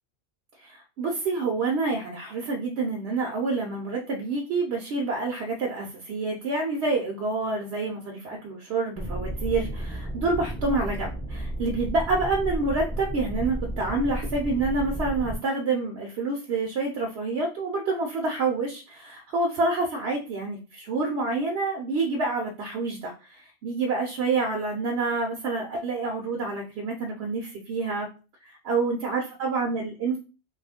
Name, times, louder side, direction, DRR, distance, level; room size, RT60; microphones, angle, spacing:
voice 1, 0.6-28.1 28.4-30.2, right 3 dB, 70° right, 0 dB, 0.9 m, -28 dB
sound 1, 9.0-15.4, right 1 dB, ahead, 0.4 m, -32 dB
3.0 x 2.4 x 3.4 m, 0.33 s
omnidirectional pair, 1.2 m